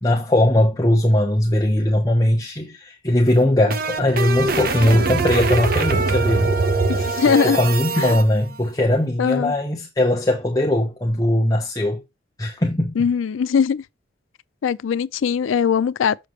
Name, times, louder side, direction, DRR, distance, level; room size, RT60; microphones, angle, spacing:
voice 1, 0.0-6.5 7.3-12.0 12.4-13.0, left 1 dB, 20° left, 0.8 m, -19 dB
sound 1, 3.3-8.2, right 3 dB, 45° right, 0.8 m, -22 dB
voice 2, 6.9-7.6 8.0-8.2 9.2-9.5 13.0-13.8 14.6-16.3, left 7 dB, 85° left, 0.4 m, -20 dB
6.7 x 6.5 x 3.1 m
head